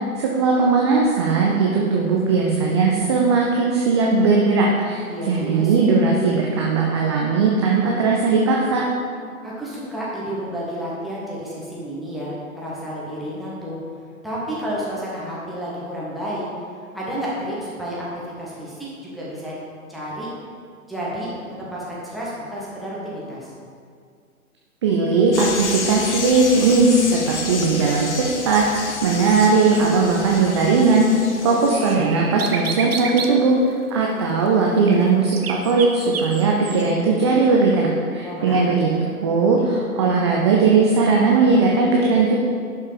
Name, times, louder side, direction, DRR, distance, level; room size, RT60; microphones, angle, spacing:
voice 1, 0.1-8.9 24.8-31.1 31.4-38.9 39.2-42.4, right 4 dB, 20° right, -2 dB, 0.6 m, -18 dB
voice 2, 5.1-6.0 9.4-13.8 14.2-16.4 16.9-19.5 19.9-20.3 20.9-23.5 31.4-32.1 38.2-38.7, equal, ahead, -8 dB, 1.8 m, -31 dB
sound 1, 25.3-32.0, left 4 dB, 50° left, 1.2 m, -30 dB
sound 2, 31.7-33.4 34.8-34.9 35.3-36.8, right 6 dB, 45° right, 1.0 m, -29 dB
11.0 x 5.5 x 5.3 m, 2.2 s
figure-of-eight pair, 125°, 43 cm